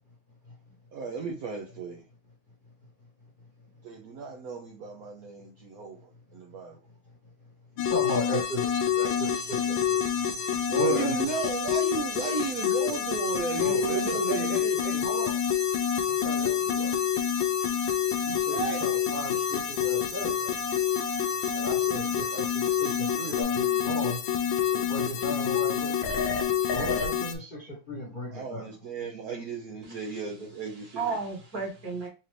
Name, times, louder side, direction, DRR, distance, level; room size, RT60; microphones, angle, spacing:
voice 1, 0.9-2.1 3.8-6.8 10.7-14.8 18.5-18.9 28.3-31.0, right 4 dB, 70° right, 0.8 m, -34 dB
sound 1, 7.8-27.3, left 9 dB, 80° left, 1.3 m, -27 dB
voice 2, 7.9-10.0 10.7-11.3 13.5-15.3 16.2-16.9 18.2-20.5 21.5-24.2 24.7-25.9 26.7-28.6, equal, 35° left, 1.0 m, -35 dB
Cricket, 9.1-23.4, right 2 dB, 20° right, 0.9 m, -42 dB
voice 3, 29.8-32.1, right 4 dB, 50° right, 1.7 m, -35 dB
4.2 x 2.6 x 3.1 m
omnidirectional pair, 2.2 m